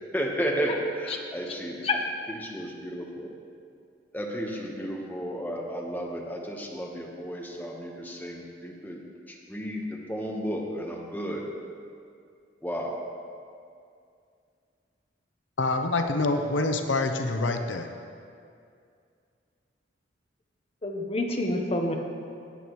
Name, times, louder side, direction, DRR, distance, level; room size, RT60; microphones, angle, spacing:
voice 1, 0.0-1.9 2.3-3.3 4.1-9.0 9.3-11.4 12.6-13.0, equal, 10° left, -1 dB, 1.1 m, -33 dB
voice 2, 15.6-17.9, left 2 dB, 80° left, 6 dB, 0.6 m, -26 dB
voice 3, 20.8-22.0, left 2 dB, 30° left, 2 dB, 0.9 m, -27 dB
16.0 x 8.5 x 3.1 m, 2.4 s
head